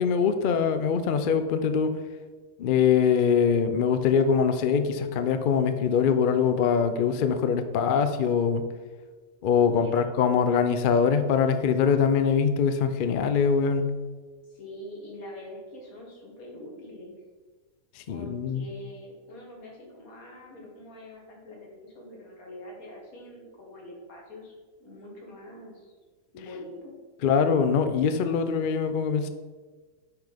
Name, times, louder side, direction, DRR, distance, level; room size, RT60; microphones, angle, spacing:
voice 1, 0.0-1.9 2.6-8.6 9.4-13.9 18.0-18.6 27.2-29.3, left 6 dB, 60° left, 9 dB, 0.5 m, -23 dB
voice 2, 9.6-10.5 14.5-17.1 18.1-24.5 24.8-25.9 26.3-26.9, left 1 dB, 85° left, -1 dB, 2.2 m, -44 dB
5.8 x 5.8 x 5.1 m, 1.4 s
omnidirectional pair, 1.5 m